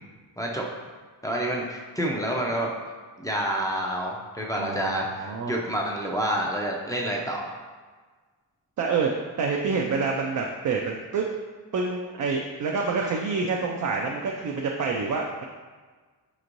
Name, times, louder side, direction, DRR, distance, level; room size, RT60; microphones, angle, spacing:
voice 1, 1.2-2.7 3.2-7.5, right 1 dB, 10° left, -3 dB, 0.5 m, -28 dB
voice 2, 4.5-5.6 8.8-9.1 9.4-11.3 11.7-15.5, right 4 dB, 45° right, 0 dB, 0.4 m, -27 dB
4.3 x 3.0 x 2.5 m, 1.4 s
cardioid pair, 70°, 43 cm